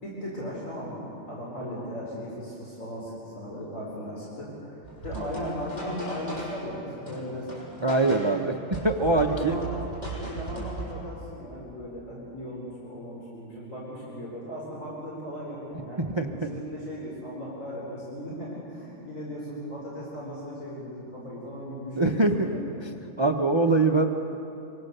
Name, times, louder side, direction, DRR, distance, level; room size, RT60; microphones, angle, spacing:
voice 1, 0.0-7.5 8.0-8.4 9.1-16.0 16.3-22.7 23.2-23.3 23.6-23.7, equal, 75° left, -5 dB, 5.0 m, -37 dB
sound 1, 4.8-6.7 7.1-8.4 8.7-10.9, right 2 dB, 30° left, 6.4 m, -38 dB
voice 2, 7.8-8.6 8.8-9.6 16.0-16.5 22.0-22.5 22.8-22.9 23.2-24.1, right 2 dB, 25° right, 4 dB, 0.8 m, -23 dB
25.5 x 23.5 x 6.7 m, 2.9 s
omnidirectional pair, 1.4 m